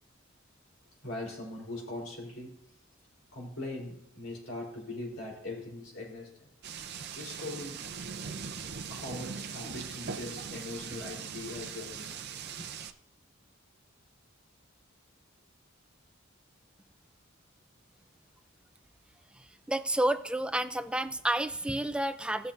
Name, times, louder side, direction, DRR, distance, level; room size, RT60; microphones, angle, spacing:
voice 1, 1.0-2.6 3.3-6.5 7.2-7.8 8.9-12.6, left 2 dB, 90° left, -1 dB, 3.7 m, -41 dB
sound 1, 6.6-12.9, right 6 dB, 55° right, 0.6 m, -40 dB
voice 2, 19.7-22.5, right 1 dB, 5° right, 10 dB, 0.4 m, -30 dB
18.0 x 6.7 x 2.6 m, 0.79 s
head